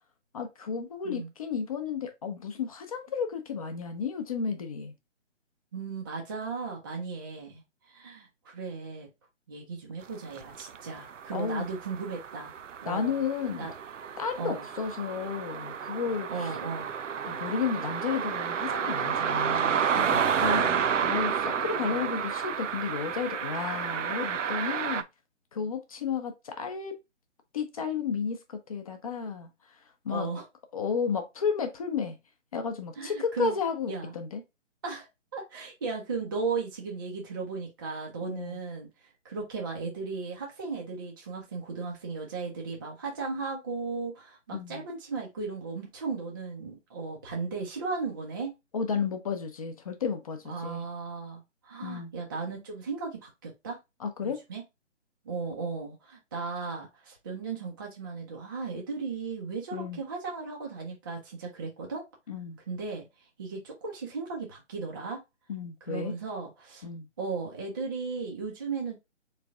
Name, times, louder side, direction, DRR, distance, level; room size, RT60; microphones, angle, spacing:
voice 1, 0.3-4.9 11.3-11.7 12.9-13.7 14.2-16.6 17.2-25.0 25.5-26.9 27.5-29.7 30.0-30.3 30.7-32.2 32.5-34.4 38.2-38.6 44.5-44.8 48.7-50.9 51.8-52.1 54.0-54.4 59.7-60.0 62.3-62.6 65.5-66.2 66.8-67.1, left 6 dB, 30° left, 0.7 m, -33 dB
voice 2, 5.7-7.6 7.9-9.1 9.5-12.5 12.8-13.2 13.6-13.7 14.4-14.6 16.3-16.9 21.9-22.1 30.1-30.4 33.0-33.6 33.9-34.1 34.8-38.9 39.2-48.5 50.5-53.8 54.2-54.6 55.2-62.0 62.7-63.1 63.4-65.2 65.9-66.9 67.2-69.0, right 4 dB, 20° right, 0.6 m, -36 dB
sound 1, 10.4-25.0, right 7 dB, 80° right, 0.6 m, -31 dB
3.6 x 3.3 x 3.4 m
figure-of-eight pair, 145°, 37 cm